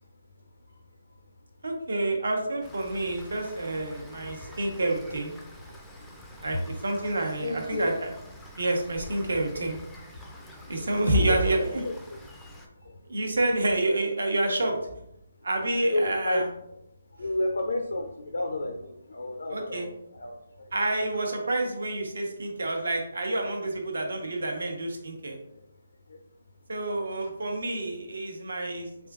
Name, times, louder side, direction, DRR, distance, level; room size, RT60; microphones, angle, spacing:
voice 1, 1.6-5.3 6.4-8.1 8.6-9.8 10.7-11.8 13.1-14.8 15.4-16.4 19.5-19.9 20.7-25.4 26.7-28.9, right 2 dB, 75° right, 2 dB, 0.9 m, -28 dB
Rain, 2.6-12.7, equal, 5° left, 0.3 m, -47 dB
voice 2, 7.4-7.9 10.7-12.2 12.7-13.1 15.9-16.8 17.1-20.7 25.6-25.7 26.1-26.2 27.2-27.3, left 1 dB, 90° left, 3 dB, 0.4 m, -32 dB
3.5 x 3.5 x 2.4 m, 0.79 s
hypercardioid pair, 170°, 0 cm